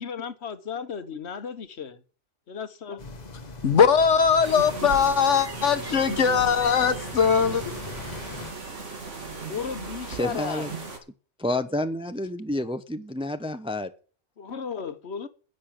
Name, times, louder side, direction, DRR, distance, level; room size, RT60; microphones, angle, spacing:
voice 1, 0.0-2.0 2.5-3.0 9.5-10.7 14.4-15.3, left 6 dB, 65° left, 1.4 m, -34 dB
sound 1, 3.0-8.5, left 2 dB, 35° left, 1.2 m, -40 dB
voice 2, 3.6-7.6, left 6 dB, 80° left, 1.4 m, -20 dB
sound 2, 4.4-11.0, right 4 dB, 90° right, 2.6 m, -36 dB
voice 3, 10.1-10.8 11.4-13.9, left 1 dB, 5° right, 0.6 m, -29 dB
10.5 x 6.8 x 8.8 m
omnidirectional pair, 1.2 m